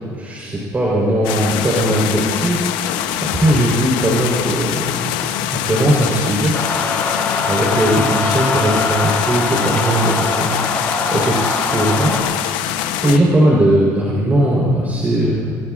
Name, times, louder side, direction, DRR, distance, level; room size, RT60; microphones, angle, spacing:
voice 1, 0.1-3.0 3.3-5.2 5.5-6.5 7.4-10.6 11.1-12.1 13.0-15.6, right 1 dB, 25° right, -4 dB, 4.0 m, -18 dB
sound 1, 1.2-13.2, left 11 dB, 85° left, 0.9 m, -23 dB
sound 2, 6.5-12.2, left 3 dB, 25° left, 4.5 m, -22 dB
25.5 x 18.0 x 2.5 m, 2.3 s
supercardioid pair, 100°, 8 cm